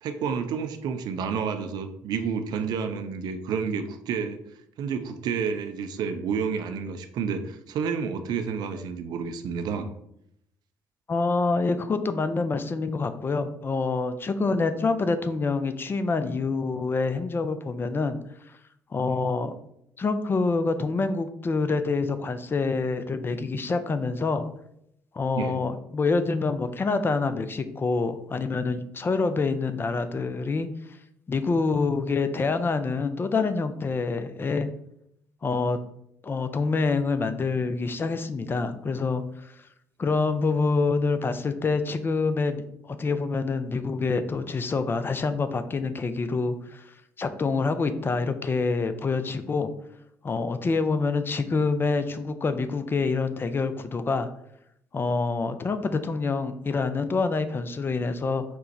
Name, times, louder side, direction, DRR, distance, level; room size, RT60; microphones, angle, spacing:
voice 1, 0.0-4.4 4.8-9.9 25.3-25.6, right 6 dB, 55° right, 7 dB, 0.4 m, -30 dB
voice 2, 11.1-18.2 18.5-18.6 18.9-19.5 20.0-24.5 25.1-30.7 31.3-34.7 35.4-35.8 36.2-39.5 40.0-46.9 47.2-49.7 50.2-54.3 54.9-58.4, left 4 dB, 25° left, 10 dB, 0.4 m, -26 dB
4.3 x 2.1 x 4.1 m, 0.76 s
figure-of-eight pair, 45°, 9 cm